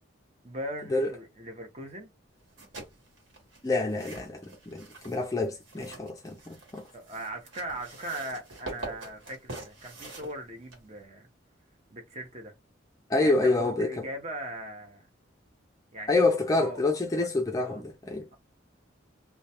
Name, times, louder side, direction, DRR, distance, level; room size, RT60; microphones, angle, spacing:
voice 1, 0.4-2.1 6.9-11.3 11.9-12.5 13.2-15.1 15.9-16.2 16.5-16.8 17.2-17.3 17.6-17.8, right 1 dB, 35° right, 0.7 m, -39 dB
sound 1, 2.4-11.0, right 2 dB, 85° right, 1.2 m, -45 dB
voice 2, 3.6-6.9 13.1-14.1 16.1-18.4, left 2 dB, 20° left, 0.3 m, -27 dB
2.2 x 2.2 x 2.8 m
head